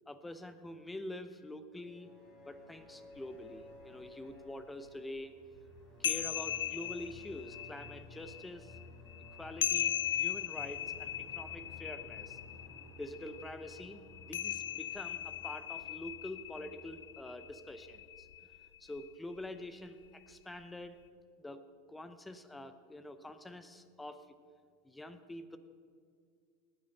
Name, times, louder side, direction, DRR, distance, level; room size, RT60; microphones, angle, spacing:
voice 1, 0.1-2.1 2.4-5.4 6.0-8.7 9.4-12.4 13.0-18.3 18.8-21.0 21.4-21.6 21.9-24.3 24.8-25.6, left 1 dB, 10° left, 11 dB, 0.8 m, -46 dB
sound 1, 1.7-18.6, left 1 dB, 35° left, 3.8 m, -55 dB
sound 2, 3.2-3.3 3.8-3.9 4.3-4.4 5.6-19.1, left 11 dB, 85° left, 0.3 m, -39 dB
18.5 x 7.8 x 5.5 m, 2.2 s
hypercardioid pair, 100°, 0 cm